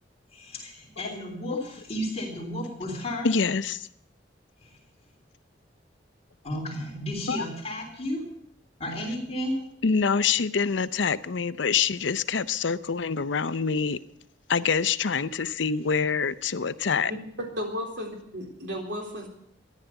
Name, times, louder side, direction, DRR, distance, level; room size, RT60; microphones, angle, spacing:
voice 1, 0.3-3.3 4.6-4.8 6.4-8.3 8.8-9.7, equal, 35° left, 3.4 m, -33 dB
voice 2, 3.2-3.9 7.3-7.5 9.8-14.0 14.5-17.1, left 5 dB, 85° left, 0.7 m, -25 dB
voice 3, 17.6-19.3, left 1 dB, 70° right, 3.8 m, -34 dB
14.0 x 11.5 x 8.1 m
head